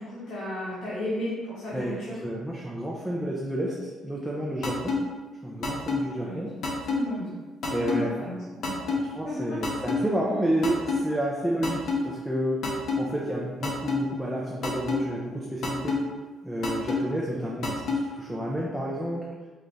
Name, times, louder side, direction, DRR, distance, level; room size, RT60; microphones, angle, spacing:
voice 1, 0.0-2.2 6.1-6.5 6.8-7.3 7.7-8.9 9.2-9.7, left 1 dB, 75° left, -9 dB, 1.4 m, -34 dB
voice 2, 1.7-3.7 4.0-5.0 5.4-6.5 7.7-8.2 8.9-12.6 13.0-16.0 16.4-19.3, right 1 dB, 5° right, -4 dB, 0.5 m, -30 dB
sound 1, 4.6-5.0 5.6-6.0 6.6-7.0 7.6-8.0 8.6-9.0 9.6-10.0 10.6-11.0 11.6-12.0 12.6-13.0 13.6-14.0 14.6-15.0 15.6-16.0 16.6-17.0 17.6-18.0, left 5 dB, 55° left, 0.8 m, -26 dB
5.3 x 2.4 x 3.3 m, 1.3 s
cardioid pair, 150°, 0 cm